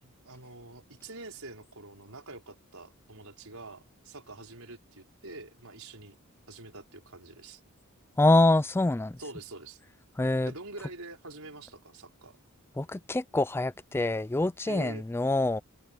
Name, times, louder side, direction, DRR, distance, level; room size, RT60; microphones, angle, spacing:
voice 1, 0.0-6.2 6.5-7.6 9.2-9.8 10.4-12.4 14.7-15.1, right 2 dB, 75° right, 5.0 m, -45 dB
voice 2, 8.2-9.2 10.2-10.5 12.8-15.6, left 2 dB, 10° left, 0.3 m, -25 dB
open air
head